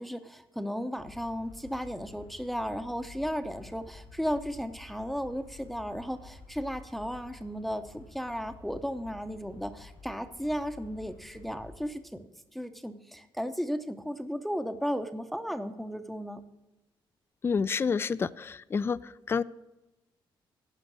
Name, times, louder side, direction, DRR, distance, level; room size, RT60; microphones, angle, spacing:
voice 1, 0.0-16.4, equal, ahead, 9 dB, 0.7 m, -35 dB
sound 1, 0.9-11.9, left 3 dB, 90° left, 4.3 m, -51 dB
voice 2, 17.4-19.0 19.3-19.4, left 5 dB, 25° left, 18 dB, 0.3 m, -28 dB
11.5 x 5.1 x 7.9 m, 0.99 s
cardioid pair, 115°, 9 cm